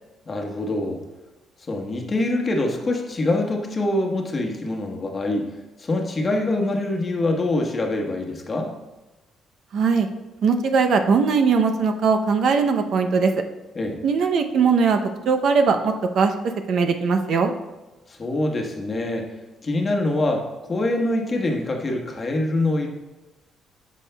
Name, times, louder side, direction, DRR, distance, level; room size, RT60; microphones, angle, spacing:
voice 1, 0.3-1.0 1.7-8.7 13.7-14.0 18.1-22.9, left 2 dB, 30° left, 1 dB, 1.1 m, -25 dB
voice 2, 9.7-10.1 10.4-13.3 14.0-15.0 15.3-16.3 16.7-17.5, right 5 dB, 65° right, 6 dB, 0.6 m, -20 dB
9.8 x 6.3 x 2.2 m, 1.1 s
cardioid pair, 110°, 0 cm